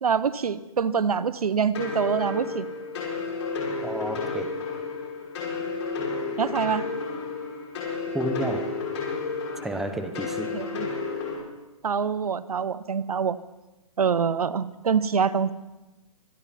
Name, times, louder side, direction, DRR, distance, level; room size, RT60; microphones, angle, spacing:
voice 1, 0.0-2.7 6.4-6.9 10.5-10.9 11.8-13.4 14.0-15.5, right 6 dB, 85° right, 16 dB, 0.7 m, -25 dB
sound 1, 1.7-11.4, left 4 dB, 50° left, 5.7 m, -32 dB
voice 2, 3.8-4.5 8.1-8.7 9.6-10.5, right 1 dB, ahead, 7 dB, 0.6 m, -30 dB
25.0 x 11.0 x 4.1 m, 1.1 s
hypercardioid pair, 150°, 18 cm